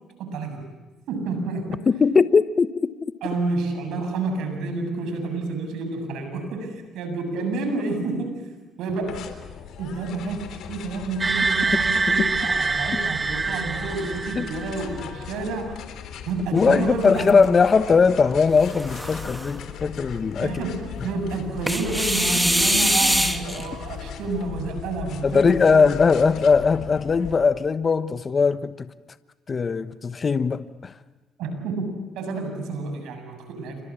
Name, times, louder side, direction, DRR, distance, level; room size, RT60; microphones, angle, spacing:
voice 1, 0.2-0.7 1.1-1.8 3.2-9.3 9.8-15.8 16.3-17.5 20.4-25.8 31.4-33.8, right 3 dB, 80° right, 6 dB, 7.5 m, -29 dB
voice 2, 1.9-2.9 14.4-14.5 16.5-20.5 25.2-28.9 29.5-30.9, left 5 dB, 40° left, 13 dB, 1.2 m, -20 dB
sound 1, 9.1-27.4, left 9 dB, 70° left, 3.6 m, -38 dB
sound 2, 11.2-15.0, right 4 dB, 30° right, 2.0 m, -25 dB
sound 3, 16.6-17.5 18.5-19.6 21.7-23.6, equal, 5° right, 2.8 m, -24 dB
29.0 x 25.5 x 7.4 m, 1.2 s
supercardioid pair, 75°, 0 cm